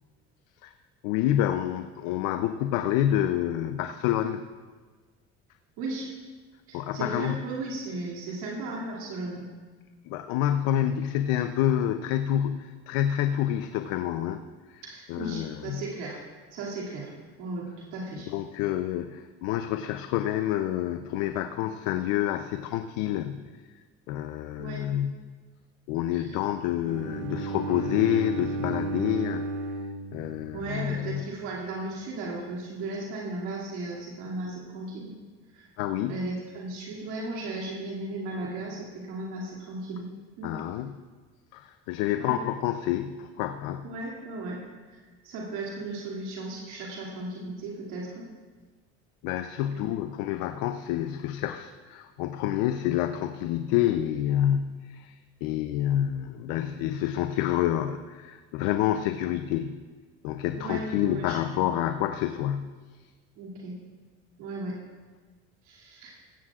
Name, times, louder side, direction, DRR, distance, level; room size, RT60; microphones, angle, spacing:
voice 1, 1.0-4.4 6.7-7.4 10.1-14.4 14.7-14.8 15.1-15.8 18.3-23.5 24.1-25.1 25.9-29.5 30.1-31.2 35.8-36.2 40.4-41.0 41.5-43.9 49.2-55.1 55.4-59.8 60.2-62.8, left 11 dB, 85° left, 9 dB, 0.6 m, -28 dB
voice 2, 5.8-6.1 6.7-9.5 14.8-16.2 16.5-17.1 17.4-18.3 24.6-24.8 26.1-26.4 30.5-35.1 35.5-35.7 36.0-40.1 40.4-40.5 42.2-42.4 43.8-44.6 44.9-48.3 49.7-49.9 60.5-61.4 63.4-63.8 64.4-64.8 65.6-66.2, right 2 dB, 85° right, -4 dB, 2.5 m, -36 dB
Bowed string instrument, 26.8-30.9, right 3 dB, 65° right, 0.8 m, -33 dB
16.0 x 16.0 x 2.4 m, 1.4 s
supercardioid pair, 90°, 30 cm